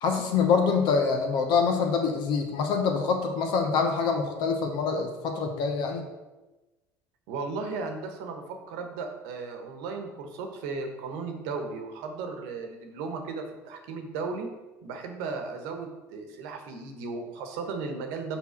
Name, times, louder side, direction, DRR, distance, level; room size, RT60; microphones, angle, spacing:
voice 1, 0.0-6.0, left 5 dB, 60° left, 4 dB, 1.2 m, -25 dB
voice 2, 7.3-14.5 14.8-18.4, right 4 dB, 70° right, 4 dB, 1.1 m, -35 dB
5.8 x 4.0 x 5.8 m, 1.1 s
hypercardioid pair, 70°, 9 cm